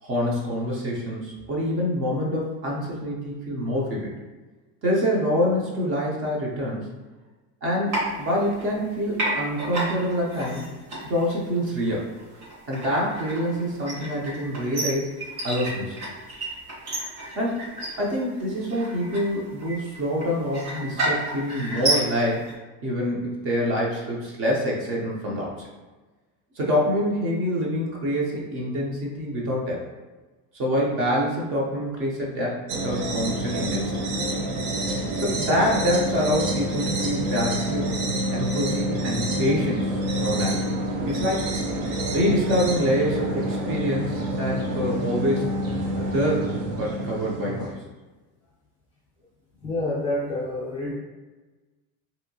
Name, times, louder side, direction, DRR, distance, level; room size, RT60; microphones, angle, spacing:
voice 1, 0.0-4.1 4.8-6.9 7.6-10.6 11.0-12.1 12.7-15.1 15.4-16.0 17.4-17.6 18.0-22.5 22.8-25.7 26.6-29.9 30.5-34.0 35.2-38.0 38.3-40.7 41.1-41.5 42.1-45.6 45.9-47.8, equal, 35° right, -3 dB, 0.6 m, -26 dB
sound 1, 7.9-8.9 9.1-22.5, right 1 dB, 55° right, 1.2 m, -31 dB
sound 2, 32.7-47.8, right 1 dB, 75° right, 0.7 m, -27 dB
voice 2, 49.6-50.9, left 1 dB, 15° left, -9 dB, 0.4 m, -28 dB
2.8 x 2.7 x 2.7 m, 1.2 s
cardioid pair, 165°, 39 cm